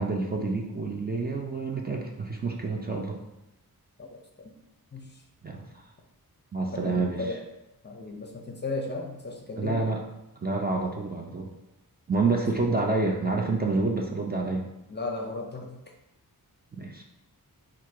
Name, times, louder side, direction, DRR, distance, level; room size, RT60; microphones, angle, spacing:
voice 1, 0.0-3.2 5.4-5.8 6.5-7.2 9.6-10.0 10.4-11.5 12.1-14.7 16.8-17.0, right 3 dB, 25° right, 0 dB, 0.5 m, -28 dB
voice 2, 6.7-7.4 7.8-9.9 12.3-12.4 14.9-15.8, left 2 dB, 30° left, 1 dB, 0.6 m, -35 dB
4.5 x 2.5 x 4.7 m, 0.91 s
wide cardioid pair, 135°, 37 cm